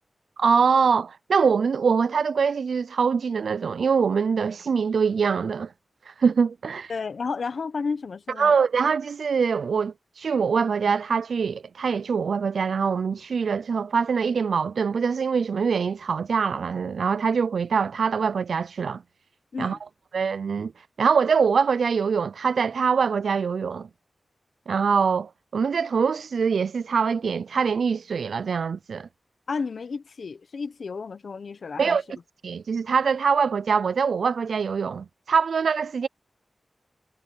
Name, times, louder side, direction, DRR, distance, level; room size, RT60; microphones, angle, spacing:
voice 1, 0.4-5.7 6.1-6.9 8.4-19.0 19.6-19.8 20.1-20.7 21.0-23.9 24.7-29.1 31.8-32.0 32.4-36.1, right 6 dB, 85° right, 0.3 m, -23 dB
voice 2, 6.9-8.5 19.5-19.8 29.5-32.0, left 5 dB, 75° left, 1.0 m, -32 dB
cardioid pair, 60°, 0 cm